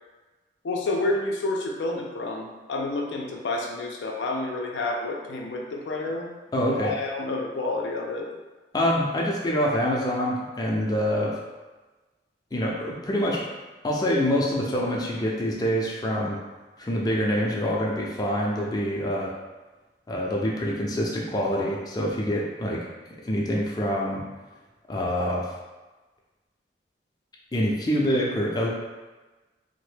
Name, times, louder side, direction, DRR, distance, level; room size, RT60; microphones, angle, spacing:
voice 1, 0.6-6.3 6.7-8.3, left 2 dB, 85° left, 0 dB, 0.4 m, -29 dB
voice 2, 6.5-6.9 8.7-11.4 12.5-13.5 13.8-16.4 16.8-19.3 20.1-22.9 23.2-24.2 24.9-25.5 27.5-28.7, equal, 20° left, -3 dB, 0.4 m, -25 dB
3.0 x 2.1 x 3.2 m, 1.2 s
head